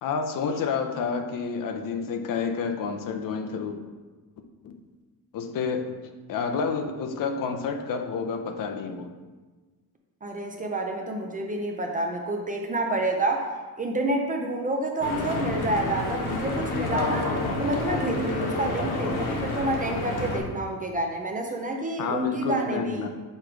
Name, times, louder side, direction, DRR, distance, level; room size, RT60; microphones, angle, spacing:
voice 1, 0.0-3.8 4.6-4.8 5.3-6.0 6.3-9.1 22.0-23.1, left 5 dB, 60° left, 6 dB, 0.6 m, -29 dB
voice 2, 10.2-13.5 13.8-17.3 17.6-23.0, right 2 dB, 25° right, 2 dB, 0.4 m, -28 dB
Stream / Boat Water vehicle, 15.0-20.4, left 2 dB, 85° left, 1.2 m, -29 dB
6.7 x 3.1 x 4.8 m, 1.3 s
cardioid pair, 170°, 37 cm